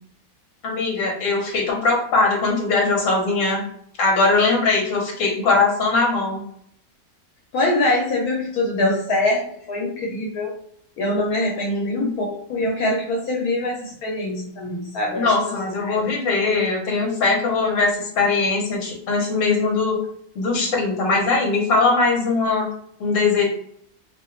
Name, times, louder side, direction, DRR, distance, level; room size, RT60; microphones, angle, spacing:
voice 1, 0.6-3.6 4.0-6.4 11.7-12.1 15.1-20.0 20.3-22.7 23.0-23.4, left 3 dB, 60° left, -2 dB, 1.3 m, -20 dB
voice 2, 7.5-10.5 11.0-15.5 15.9-16.1, left 1 dB, 80° left, -2 dB, 1.2 m, -24 dB
3.0 x 2.4 x 3.0 m, 0.68 s
omnidirectional pair, 1.6 m